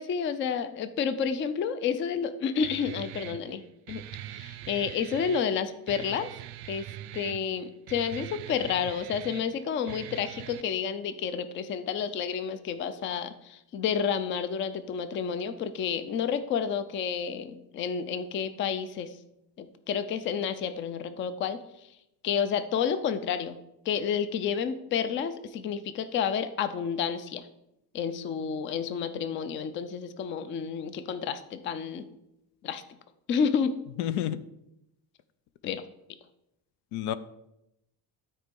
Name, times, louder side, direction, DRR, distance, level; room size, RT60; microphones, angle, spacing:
voice 1, 0.0-3.6 3.9-4.0 4.3-6.3 6.7-6.9 7.1-19.1 19.6-21.6 22.2-23.6 23.9-27.5 27.9-32.1 32.6-32.8 33.3-33.7 35.6-35.8, left 7 dB, 30° left, 12 dB, 0.4 m, -30 dB
Guitar, 2.6-10.6, right 14 dB, 75° right, 0.6 m, -43 dB
voice 2, 34.0-34.4 35.6-35.7 36.9-37.1, left 11 dB, 85° left, 15 dB, 0.7 m, -29 dB
12.5 x 4.4 x 5.2 m, 0.85 s
cardioid pair, 170°, 39 cm